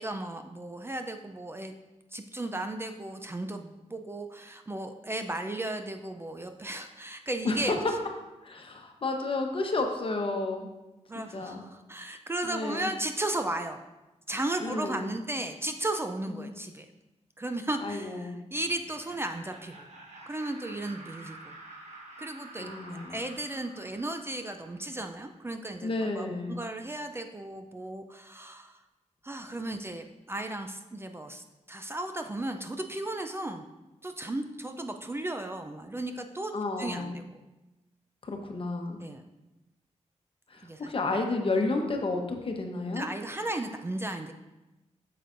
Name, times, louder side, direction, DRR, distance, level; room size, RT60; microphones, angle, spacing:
voice 1, 0.0-1.7 2.1-7.8 11.1-13.8 14.3-16.9 17.4-19.9 20.3-21.5 22.2-22.8 23.1-28.8 29.2-33.6 34.0-36.5 36.8-37.4 39.0-39.2 40.6-40.9 42.9-44.3, right 1 dB, 20° right, 6 dB, 0.4 m, -35 dB
voice 2, 7.4-7.8 8.4-10.7 11.3-11.6 12.4-12.9 14.6-15.1 16.3-16.5 17.8-18.4 22.6-23.2 25.8-26.5 36.5-37.2 38.2-39.0 40.5-43.1, left 2 dB, 45° left, 3 dB, 1.0 m, -31 dB
Laughter, 18.6-25.4, right 2 dB, 65° right, 1.6 m, -49 dB
7.9 x 6.7 x 2.6 m, 1.0 s
wide cardioid pair, 85°, 12 cm